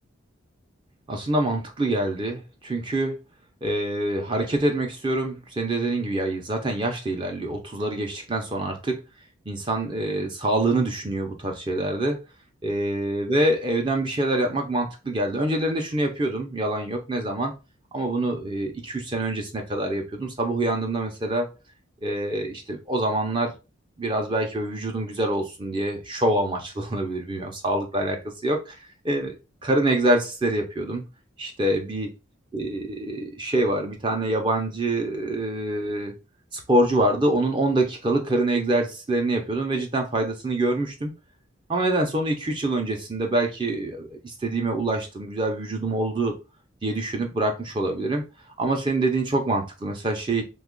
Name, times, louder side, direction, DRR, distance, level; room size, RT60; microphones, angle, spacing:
voice 1, 1.1-3.2 3.6-9.0 9.5-12.2 12.6-17.5 17.9-21.5 22.0-23.5 24.0-28.8 29.0-29.4 29.6-31.0 31.4-32.1 32.5-32.8 33.1-36.1 36.5-41.1 41.7-46.3 46.8-48.2 48.6-50.4, right 1 dB, 25° right, 3 dB, 0.5 m, -25 dB
2.9 x 2.3 x 3.7 m, 0.29 s
head